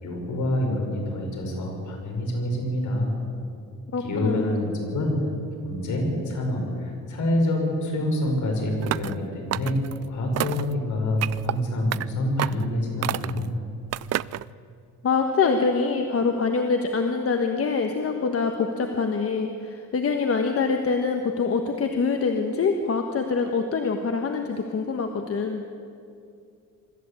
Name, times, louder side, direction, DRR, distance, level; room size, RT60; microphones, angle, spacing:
voice 1, 0.0-3.1 4.0-5.2 5.6-9.8 10.1-13.6, left 1 dB, 65° left, 1 dB, 5.9 m, -26 dB
voice 2, 3.9-4.6 15.0-25.6, left 4 dB, 45° left, 5 dB, 1.4 m, -25 dB
sound 1, 8.8-9.2 9.5-10.0 10.4-10.7 11.2-11.5 11.9-12.0 12.4-12.7 13.0-13.5 13.9-14.4, right 13 dB, 50° right, 0.4 m, -29 dB
24.0 x 13.5 x 8.5 m, 2.5 s
cardioid pair, 125°, 32 cm